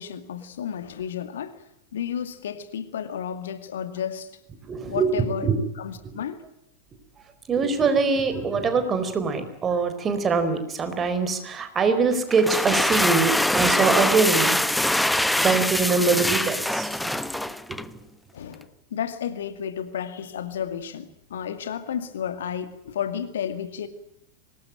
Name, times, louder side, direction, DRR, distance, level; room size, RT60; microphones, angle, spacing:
voice 1, 0.0-1.5 1.9-4.3 4.9-5.5 5.8-6.4 17.5-17.6 18.3-23.9, left 8 dB, 60° left, 2.2 m, -32 dB
voice 2, 4.6-5.1 5.4-5.6 6.0-6.2 7.5-14.7 14.9-15.1 15.4-17.1 17.7-18.0, right 4 dB, 20° right, 4.3 m, -23 dB
sound 1, 12.3-17.9, left 1 dB, 5° left, 1.0 m, -23 dB
24.5 x 20.0 x 9.0 m
figure-of-eight pair, 90°, 0 cm